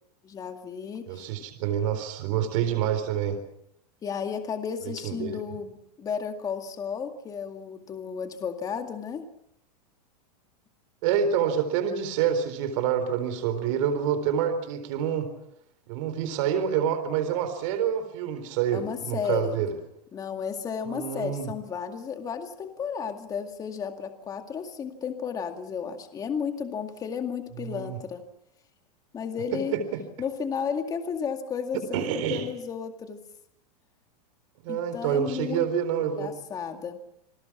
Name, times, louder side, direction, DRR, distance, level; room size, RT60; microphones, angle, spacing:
voice 1, 0.2-1.3 4.0-9.2 18.7-19.6 20.1-28.2 29.1-29.8 30.2-33.2 34.7-35.7 36.2-37.0, left 6 dB, 20° left, 6 dB, 2.1 m, -33 dB
voice 2, 1.1-3.4 5.0-5.4 11.0-15.3 15.9-19.7 20.9-21.5 27.6-28.0 29.7-29.8 31.9-32.5 34.6-36.3, right 8 dB, 50° right, 8 dB, 4.0 m, -27 dB
28.0 x 20.0 x 7.3 m, 0.77 s
supercardioid pair, 155°, 20 cm